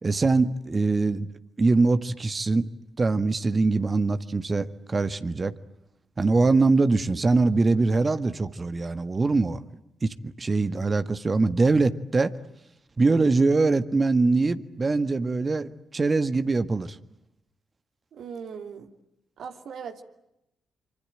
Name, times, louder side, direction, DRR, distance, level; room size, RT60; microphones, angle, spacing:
voice 1, 0.0-1.3 1.6-2.7 3.0-5.5 6.2-9.6 10.0-12.3 13.0-17.0, right 3 dB, 35° right, 11 dB, 1.8 m, -23 dB
voice 2, 18.1-18.9 19.4-20.0, right 6 dB, 70° right, 6 dB, 2.8 m, -39 dB
25.5 x 25.5 x 9.0 m, 0.84 s
hypercardioid pair, 40°, 0 cm